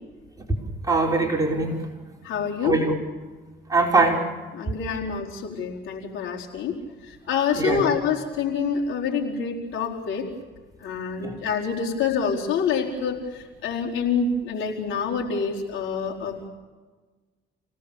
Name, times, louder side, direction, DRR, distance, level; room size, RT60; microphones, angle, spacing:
voice 1, 0.9-1.8 2.6-2.9 3.7-4.2 7.5-7.8 11.2-11.3, right 3 dB, 15° right, -1 dB, 4.9 m, -21 dB
voice 2, 2.2-2.8 4.5-6.8 7.1-10.3 10.8-16.5, left 6 dB, 85° left, -1 dB, 4.4 m, -27 dB
28.5 x 18.0 x 7.2 m, 1.3 s
cardioid pair, 90°, 20 cm